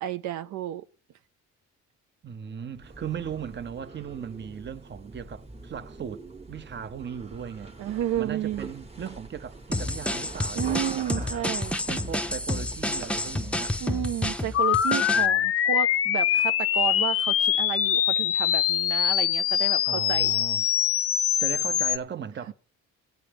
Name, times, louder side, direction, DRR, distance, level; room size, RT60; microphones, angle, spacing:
voice 1, 0.0-0.8 7.8-8.7 10.6-11.8 13.8-20.3 22.5-22.6, right 11 dB, 75° right, 0.5 m, -31 dB
voice 2, 2.2-7.7 8.2-11.6 11.9-13.8 15.1-15.5 19.9-20.6 21.4-22.5, right 8 dB, 35° right, 0.7 m, -37 dB
sound 1, 2.7-14.4, right 2 dB, 20° right, 1.1 m, -45 dB
sound 2, 9.7-15.3, left 1 dB, 5° left, 0.6 m, -30 dB
sound 3, 14.5-22.0, left 10 dB, 50° left, 0.5 m, -23 dB
18.0 x 8.9 x 3.4 m
cardioid pair, 90°, 30 cm